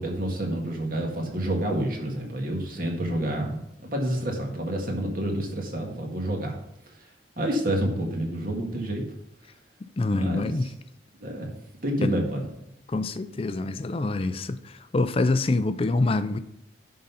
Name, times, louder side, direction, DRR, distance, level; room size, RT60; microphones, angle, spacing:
voice 1, 0.0-6.6 7.4-9.0 10.1-10.6 11.2-11.5 11.8-12.5, right 1 dB, 50° right, 1.7 m, -28 dB
voice 2, 10.0-10.7 12.0-12.2 12.9-16.4, left 2 dB, 30° left, 0.4 m, -26 dB
10.5 x 3.9 x 5.6 m
head